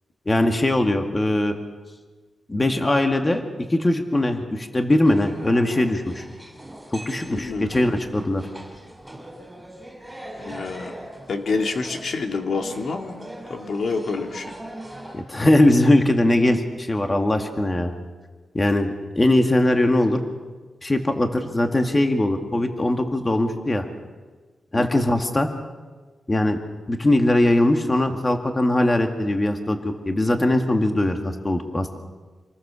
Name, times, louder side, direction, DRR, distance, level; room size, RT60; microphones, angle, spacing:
voice 1, 0.3-1.6 2.5-3.4 3.7-6.2 6.9-8.5 15.1-17.9 18.5-18.9 19.2-20.2 20.8-23.9 24.7-25.5 26.3-26.6 26.9-32.0, left 1 dB, 20° left, 5 dB, 2.0 m, -20 dB
sound 1, 5.0-15.2, right 1 dB, 5° right, 5.3 m, -41 dB
voice 2, 7.3-7.7 10.4-10.9 11.3-13.1 13.5-14.5 24.7-25.0, left 4 dB, 60° left, 4 dB, 2.2 m, -27 dB
27.5 x 20.5 x 7.0 m, 1.3 s
wide cardioid pair, 115°, 0 cm